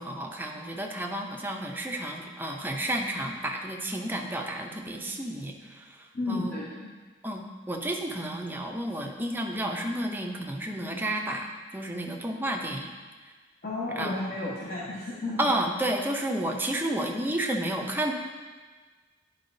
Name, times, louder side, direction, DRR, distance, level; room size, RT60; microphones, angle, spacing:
voice 1, 0.0-5.8 6.3-6.6 7.2-12.9 14.0-14.1 15.4-18.1, right 1 dB, 10° right, 1 dB, 0.6 m, -31 dB
voice 2, 6.1-6.9 13.6-15.4, left 2 dB, 45° left, -7 dB, 1.1 m, -32 dB
10.0 x 4.6 x 2.7 m, 1.4 s
head